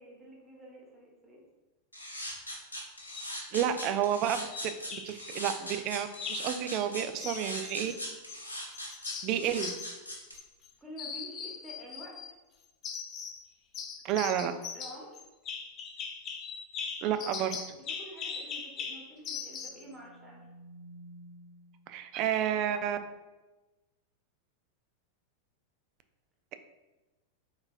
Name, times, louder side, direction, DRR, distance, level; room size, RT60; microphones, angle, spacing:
voice 1, 0.0-1.4 3.6-3.7 10.8-12.4 14.7-15.2 17.8-20.5, right 1 dB, 10° right, -3 dB, 1.2 m, -49 dB
sound 1, 1.9-10.3, left 1 dB, 80° left, 0.8 m, -40 dB
sound 2, 3.0-3.3 4.5-5.3 6.1-6.6 7.2-8.4 8.7-10.7 11.0-12.3 12.8-13.4 13.7-19.8, left 6 dB, 30° left, 0.4 m, -40 dB
voice 2, 3.5-7.9 9.2-9.7 14.0-14.5 17.0-17.8 21.9-23.0, right 9 dB, 40° right, 9 dB, 0.3 m, -31 dB
sound 3, 19.4-21.9, right 1 dB, 85° right, 0.8 m, -52 dB
4.0 x 3.8 x 2.4 m, 1.1 s
figure-of-eight pair, 90°, 0 cm